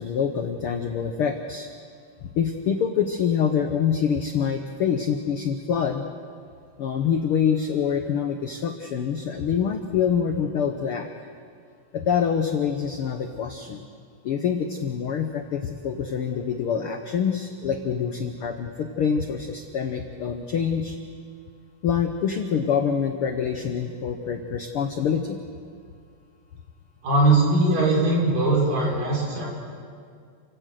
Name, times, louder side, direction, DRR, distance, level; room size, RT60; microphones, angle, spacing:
voice 1, 0.0-1.7 2.3-6.1 6.8-11.1 11.9-13.9 14.2-21.0 21.8-25.4, left 7 dB, 75° left, 5 dB, 1.3 m, -25 dB
voice 2, 27.0-29.5, right 2 dB, 80° right, -3 dB, 6.3 m, -20 dB
29.0 x 17.0 x 6.5 m, 2.2 s
omnidirectional pair, 3.8 m